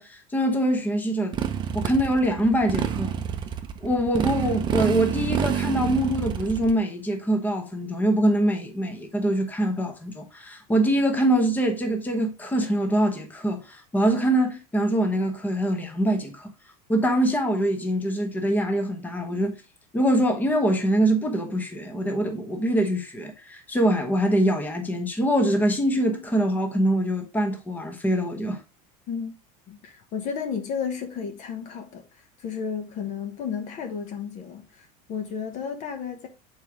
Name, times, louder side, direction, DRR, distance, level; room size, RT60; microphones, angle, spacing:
voice 1, 0.0-1.4 1.7-3.2 3.8-16.5 16.9-19.6 19.9-28.6, right 1 dB, 10° left, 1.0 m, -24 dB
Motorcycle, 1.3-6.7, right 8 dB, 25° right, 0.7 m, -28 dB
voice 2, 29.7-32.0 32.4-36.3, left 6 dB, 40° left, 1.0 m, -32 dB
6.9 x 4.6 x 3.5 m
cardioid pair, 160°, 19 cm